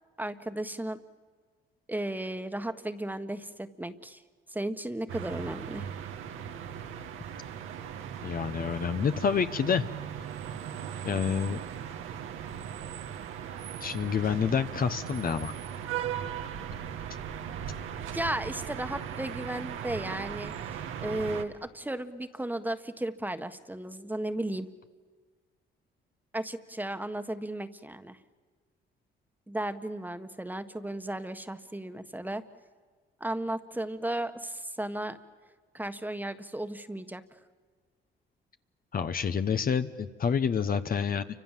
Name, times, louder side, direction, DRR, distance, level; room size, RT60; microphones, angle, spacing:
voice 1, 0.2-1.0 1.9-4.2 4.5-5.9 18.1-20.7 21.0-24.7 26.3-28.2 29.5-32.4 33.2-35.2 35.7-37.2, right 1 dB, 10° right, 9 dB, 1.5 m, -35 dB
sound 1, 5.1-21.4, right 9 dB, 90° right, 1.7 m, -38 dB
voice 2, 8.2-9.9 11.0-11.6 13.8-15.5 38.9-41.3, left 6 dB, 45° left, 9 dB, 1.2 m, -28 dB
29.5 x 25.5 x 7.6 m, 1.5 s
cardioid pair, 90°, 20 cm